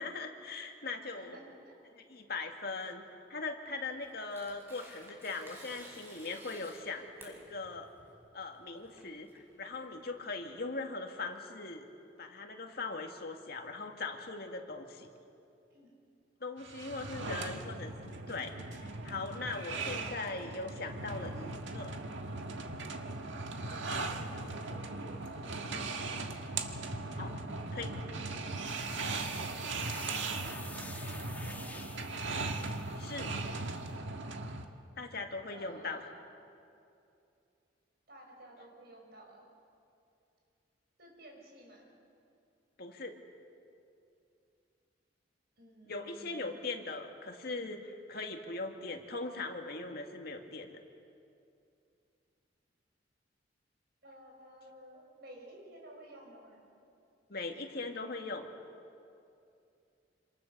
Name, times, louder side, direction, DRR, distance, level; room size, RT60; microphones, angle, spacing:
voice 1, 0.0-1.4 1.9-7.9 8.3-9.3 9.6-11.8 12.2-15.1 16.4-22.0 23.7-23.9 27.2-27.4 27.7-27.9 33.0-33.3 35.0-36.0 42.8-43.2 45.9-50.8 57.3-58.5, left 3 dB, 55° left, 3 dB, 2.3 m, -40 dB
voice 2, 1.1-1.8 15.7-15.9 17.0-17.6 24.0-25.9 27.7-28.4 29.3-30.4 30.9-32.1 35.5-36.2 38.1-39.5 41.0-41.9 45.6-46.5 54.0-56.6, right 1 dB, 55° right, 0 dB, 6.9 m, -54 dB
Tearing, 3.7-10.4, equal, 15° right, 5.2 m, -55 dB
sound 1, 16.6-34.6, right 3 dB, 80° right, 1.7 m, -39 dB
sound 2, 28.6-33.4, left 2 dB, 10° left, 1.5 m, -49 dB
27.0 x 27.0 x 6.9 m, 2.6 s
head